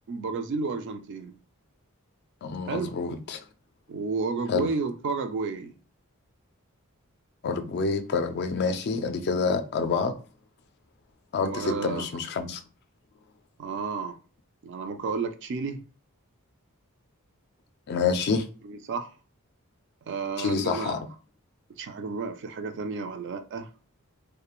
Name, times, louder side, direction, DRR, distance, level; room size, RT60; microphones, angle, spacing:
voice 1, 0.1-1.3 2.7-2.9 3.9-5.7 11.4-12.1 13.6-14.1 14.6-15.8 18.6-19.1 20.1-21.0 21.8-23.7, right 4 dB, 55° right, 0.3 m, -31 dB
voice 2, 2.4-3.4 4.5-4.7 7.4-10.1 11.3-12.6 17.9-18.5 20.4-21.1, left 4 dB, 45° left, 0.3 m, -27 dB
2.3 x 2.1 x 2.9 m
head